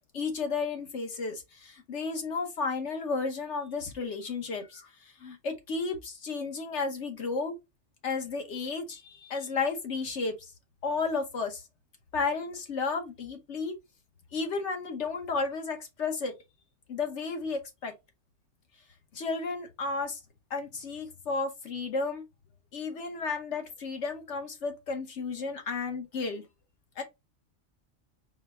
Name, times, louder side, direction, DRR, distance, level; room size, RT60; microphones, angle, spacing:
voice 1, 0.1-7.5 8.0-10.5 10.8-11.6 12.1-13.7 14.3-16.3 16.9-17.9 19.1-20.2 20.5-22.2 22.7-26.4 27.0-27.1, left 4 dB, 65° left, 1.4 m, -33 dB
4.6 x 2.2 x 4.2 m
omnidirectional pair, 1.4 m